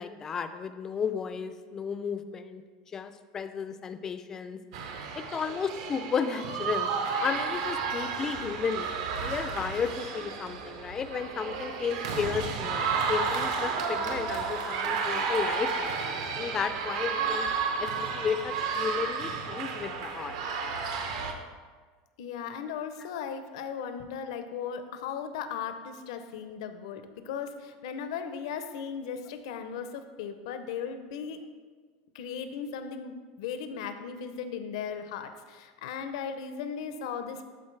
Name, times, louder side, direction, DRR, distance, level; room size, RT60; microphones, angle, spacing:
voice 1, 0.0-2.6 2.9-4.6 5.1-6.9 7.2-8.9 9.2-17.5 17.8-20.4, left 6 dB, 15° left, 9 dB, 0.3 m, -33 dB
sound 1, 4.7-21.3, right 5 dB, 70° right, 0.8 m, -32 dB
voice 2, 22.2-31.4 32.1-37.4, left 7 dB, 75° left, 8 dB, 0.6 m, -37 dB
12.0 x 4.0 x 3.2 m, 1.5 s
supercardioid pair, 170°, 3 cm